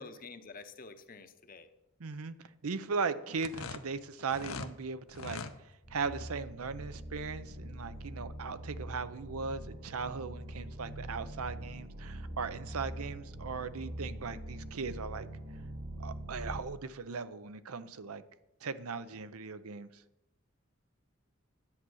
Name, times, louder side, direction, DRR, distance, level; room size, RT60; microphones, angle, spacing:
voice 1, 0.0-1.7, left 4 dB, 40° left, 9 dB, 0.8 m, -49 dB
voice 2, 2.0-2.3 2.6-5.4 5.9-15.3 16.0-18.2 18.6-19.9, right 5 dB, 85° right, 13 dB, 0.7 m, -38 dB
sound 1, 3.3-4.7 5.1-5.5, left 4 dB, 75° left, 0.8 m, -41 dB
sound 2, 5.8-16.6, right 1 dB, 70° right, 3.5 m, -43 dB
10.5 x 8.2 x 6.3 m, 0.89 s
head